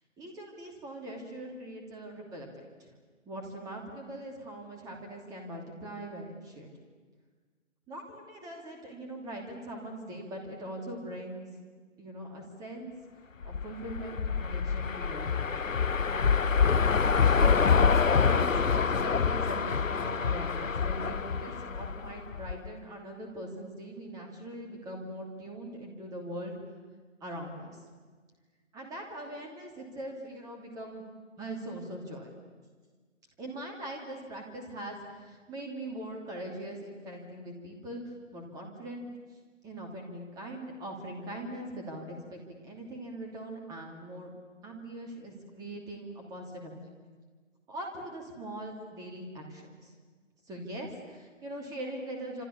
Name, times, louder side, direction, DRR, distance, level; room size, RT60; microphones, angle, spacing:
voice 1, 0.2-2.9 3.2-6.7 7.9-11.5 12.0-12.9 13.4-15.7 17.0-26.5 27.2-27.8 28.7-31.0 31.4-32.3 33.4-38.0 38.3-39.1 39.6-44.3 44.6-46.8 47.7-49.9 50.5-52.4, right 1 dB, 10° right, 1 dB, 2.9 m, -41 dB
sound 1, 13.4-22.7, left 6 dB, 80° left, 0.9 m, -26 dB
28.0 x 27.0 x 7.2 m, 1.5 s
figure-of-eight pair, 145°, 39 cm